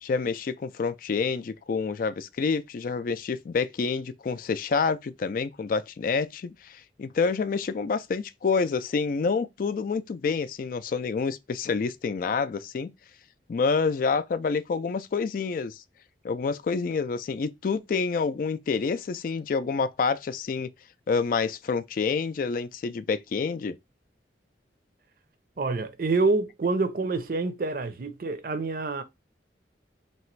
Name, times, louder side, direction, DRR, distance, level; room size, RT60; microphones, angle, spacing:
voice 1, 0.0-12.9 13.5-15.8 16.2-20.7 21.1-23.7, left 5 dB, 50° left, 0.3 m, -28 dB
voice 2, 25.6-29.0, right 3 dB, 50° right, 0.5 m, -27 dB
3.2 x 3.0 x 4.4 m
head